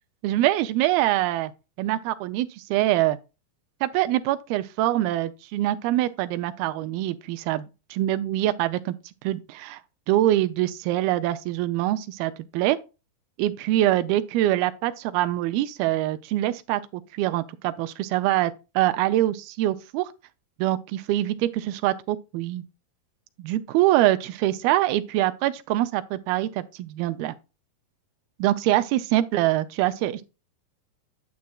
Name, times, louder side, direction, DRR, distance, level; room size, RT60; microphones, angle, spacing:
voice 1, 0.2-1.5 1.8-3.2 3.8-9.0 9.2-9.8 10.1-12.8 13.4-20.1 20.6-22.6 23.4-27.3 28.4-30.3, right 14 dB, 90° right, 2.5 m, -24 dB
9.4 x 7.5 x 2.3 m
omnidirectional pair, 4.2 m